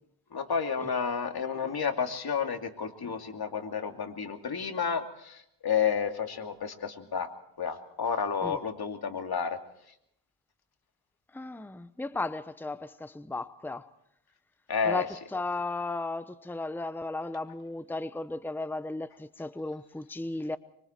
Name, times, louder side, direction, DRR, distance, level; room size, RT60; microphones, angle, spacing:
voice 1, 0.3-5.4 5.6-7.3 7.6-9.6 14.7-15.0, left 6 dB, 50° left, 2.7 m, -31 dB
voice 2, 11.3-13.9 14.8-20.6, left 2 dB, 5° left, 0.9 m, -35 dB
24.5 x 24.0 x 4.5 m
cardioid pair, 70°, 49 cm